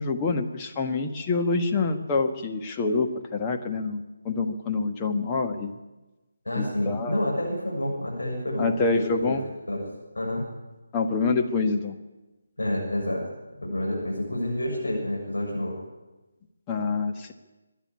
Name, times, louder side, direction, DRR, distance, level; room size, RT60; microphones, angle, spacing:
voice 1, 0.0-5.7 6.5-7.2 8.6-9.4 10.9-11.9 16.7-17.3, left 3 dB, 15° left, 3 dB, 1.5 m, -26 dB
voice 2, 6.4-9.4 9.7-9.8 10.1-10.4 12.6-13.2 13.6-15.7, left 1 dB, 65° left, -2 dB, 6.8 m, -29 dB
24.5 x 10.5 x 9.9 m, 1.1 s
figure-of-eight pair, 150°, 0 cm